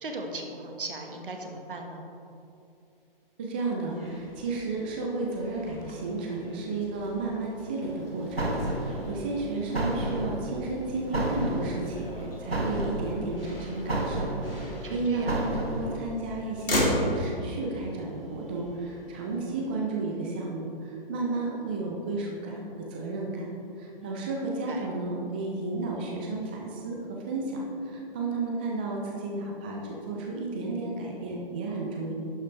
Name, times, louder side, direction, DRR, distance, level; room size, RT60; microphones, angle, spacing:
voice 1, 0.0-2.1 14.8-15.4 24.0-24.2 24.7-24.9, right 2 dB, 60° right, 2 dB, 1.5 m, -38 dB
voice 2, 3.4-23.5 23.8-32.1, right 3 dB, 10° right, -2 dB, 0.3 m, -33 dB
Motor vehicle (road), 3.9-19.7, left 1 dB, 70° left, 2.2 m, -37 dB
sound 1, 7.8-16.0, right 1 dB, 90° right, 1.0 m, -32 dB
11.0 x 5.7 x 4.4 m, 2.6 s
figure-of-eight pair, 125°, 30 cm